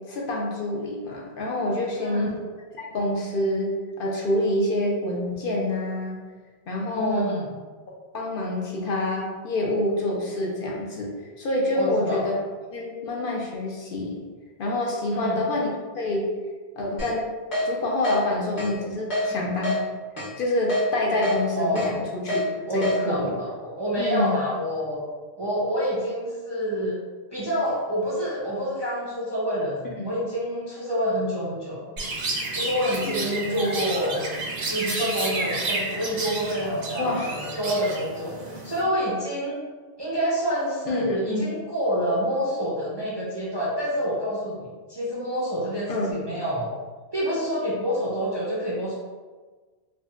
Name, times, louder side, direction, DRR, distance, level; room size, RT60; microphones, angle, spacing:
voice 1, 0.1-2.3 2.8-3.7 4.0-6.2 6.7-7.3 8.1-12.3 12.7-14.2 14.6-15.7 15.9-16.3 16.8-17.3 17.6-19.8 20.4-23.3 24.0-24.4 33.1-33.8 37.0-37.3 40.9-41.4 45.9-46.1, left 1 dB, 65° left, -2 dB, 0.7 m, -27 dB
voice 2, 2.0-2.4 6.9-7.5 11.7-12.2 15.1-15.5 19.2-19.4 21.6-22.0 22.6-25.0 25.4-27.0 27.3-31.9 32.5-34.2 34.7-39.6 40.0-46.7 47.1-49.0, equal, 35° right, -8 dB, 0.4 m, -27 dB
Keyboard (musical), 17.0-17.1 17.5-17.7 18.0-18.2 18.6-18.7 19.1-19.2 19.6-19.8 20.2-20.3 20.7-20.8 21.2-21.4 21.8-21.9 22.3-22.4 22.8-23.0, left 1 dB, 45° left, 1.1 m, -26 dB
Chirp tweet, 32.0-38.8, right 2 dB, 70° right, 0.8 m, -31 dB
3.8 x 2.2 x 2.3 m, 1.4 s
omnidirectional pair, 1.1 m